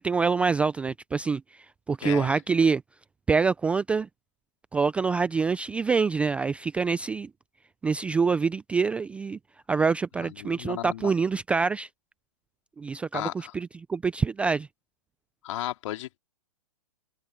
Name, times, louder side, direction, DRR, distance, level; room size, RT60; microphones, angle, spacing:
voice 1, 0.0-1.4 1.9-2.8 3.3-4.1 4.7-7.3 7.8-9.4 9.7-11.9 12.8-14.7, right 5 dB, 5° right, 0.4 m, -25 dB
voice 2, 2.0-2.4 10.2-11.1 13.1-13.5 15.4-16.2, left 14 dB, 55° left, 2.8 m, -35 dB
hypercardioid pair, 140°, 19 cm